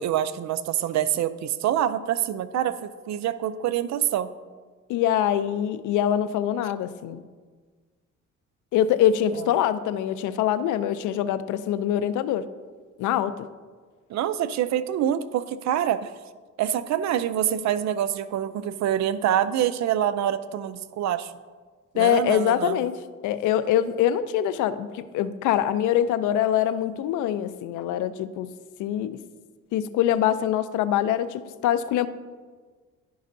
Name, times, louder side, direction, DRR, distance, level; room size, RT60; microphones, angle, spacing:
voice 1, 0.0-4.3 9.4-9.5 14.1-16.1 16.6-21.3 21.9-22.8, right 10 dB, 65° right, 14 dB, 0.5 m, -26 dB
voice 2, 4.9-7.2 8.7-12.5 13.0-13.5 21.9-28.5 28.8-29.2 29.7-32.1, left 10 dB, 85° left, 14 dB, 0.4 m, -24 dB
11.0 x 5.3 x 2.6 m, 1.5 s
cardioid pair, 90°, 30 cm